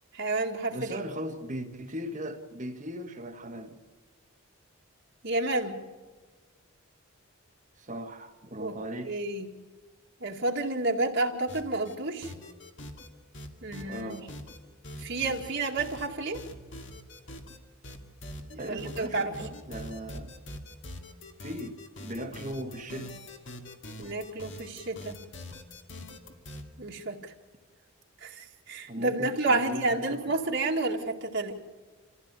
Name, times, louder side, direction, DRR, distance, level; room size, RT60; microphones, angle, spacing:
voice 1, 0.1-1.0 5.2-5.8 8.6-8.8 9.1-9.6 10.2-12.3 13.6-14.2 15.0-16.4 18.5-19.4 24.0-25.2 26.8-27.3 28.2-31.5, right 2 dB, 55° right, 2.1 m, -30 dB
voice 2, 0.7-3.8 7.8-9.1 13.8-14.3 18.6-20.4 21.4-23.1 28.9-30.2, equal, 35° right, 1.7 m, -38 dB
sound 1, 11.5-12.0 12.2-13.1 13.3-14.6 14.8-16.1 16.3-17.6 17.8-26.6, left 1 dB, 55° left, 2.4 m, -43 dB
27.5 x 15.5 x 8.4 m
head